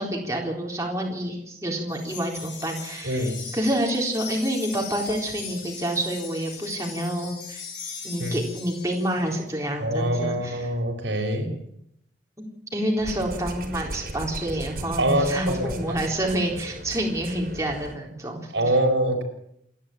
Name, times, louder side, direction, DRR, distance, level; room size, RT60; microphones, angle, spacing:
voice 1, 0.0-7.6 8.0-10.7 12.4-12.5 12.7-18.5, right 1 dB, 15° right, -1 dB, 4.0 m, -28 dB
Wind chime, 1.9-9.4, left 6 dB, 70° left, 7.4 m, -39 dB
voice 2, 3.0-3.4 8.2-8.4 9.8-11.5 15.0-16.0 18.5-19.2, right 1 dB, 80° right, 3 dB, 5.0 m, -24 dB
sound 1, 13.0-18.0, right 1 dB, 50° right, 4.4 m, -37 dB
28.0 x 11.0 x 8.6 m, 0.73 s
head